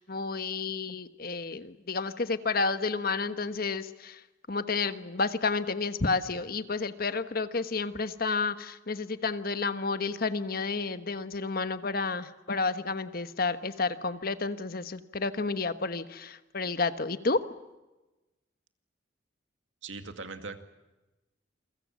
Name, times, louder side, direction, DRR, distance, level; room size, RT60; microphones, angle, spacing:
voice 1, 0.0-4.2 4.5-17.4, left 4 dB, 50° left, 11 dB, 1.2 m, -31 dB
voice 2, 19.8-20.6, right 4 dB, 85° right, 7 dB, 2.3 m, -40 dB
28.5 x 23.0 x 7.3 m, 1.1 s
head